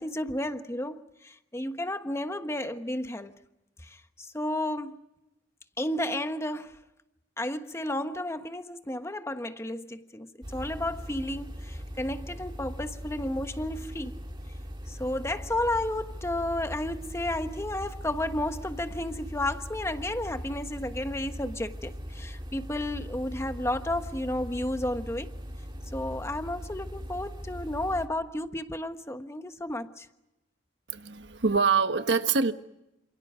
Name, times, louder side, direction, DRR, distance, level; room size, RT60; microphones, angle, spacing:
voice 1, 0.0-3.3 3.8-5.0 5.8-6.8 7.4-14.2 14.9-25.3 25.9-30.1, left 1 dB, 15° left, 1.3 m, -32 dB
sound 1, 10.4-28.1, equal, 30° right, 3.3 m, -40 dB
voice 2, 30.9-32.5, right 5 dB, 80° right, 1.3 m, -25 dB
29.0 x 27.5 x 5.0 m
head